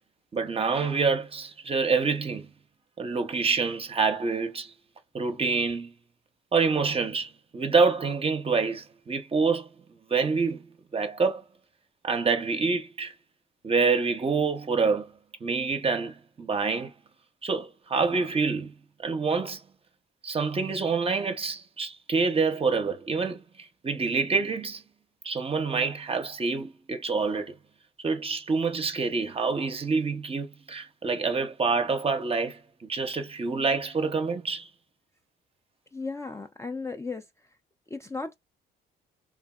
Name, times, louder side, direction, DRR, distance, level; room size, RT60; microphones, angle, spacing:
voice 1, 0.3-2.5 3.0-4.7 5.1-5.9 6.5-9.7 10.1-11.4 12.0-13.1 13.6-15.1 15.4-16.9 17.4-18.7 19.0-19.6 20.2-24.8 25.2-27.5 28.0-34.7, right 4 dB, 30° right, 0.6 m, -27 dB
voice 2, 35.9-37.2 37.9-38.3, left 4 dB, 15° left, 0.3 m, -35 dB
3.4 x 2.0 x 2.3 m
cardioid pair, 90°, 20 cm